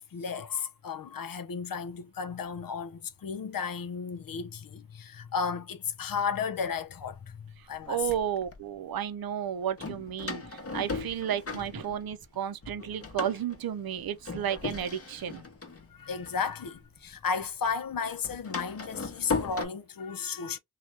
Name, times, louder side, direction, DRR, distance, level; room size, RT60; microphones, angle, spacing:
voice 1, 0.0-8.1 15.8-20.6, left 6 dB, 60° left, 0.6 m, -34 dB
Door, 6.6-6.7 7.5-8.6 9.8-12.4 12.6-17.2 17.4-19.6, left 4 dB, 35° left, 0.9 m, -37 dB
voice 2, 7.9-15.4, right 9 dB, 60° right, 0.6 m, -33 dB
2.7 x 2.4 x 3.1 m
cardioid pair, 40°, 40 cm